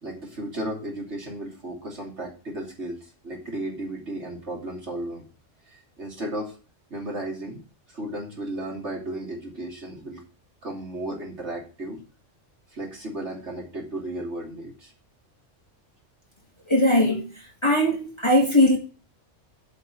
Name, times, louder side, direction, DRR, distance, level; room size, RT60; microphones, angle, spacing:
voice 1, 0.0-5.2 5.7-6.5 6.9-7.6 7.9-10.2 10.6-12.0 12.7-14.9, right 1 dB, 65° right, 3.2 m, -34 dB
voice 2, 16.7-17.3 17.6-18.8, left 1 dB, 20° left, 2.2 m, -19 dB
7.7 x 5.7 x 7.7 m
omnidirectional pair, 1.3 m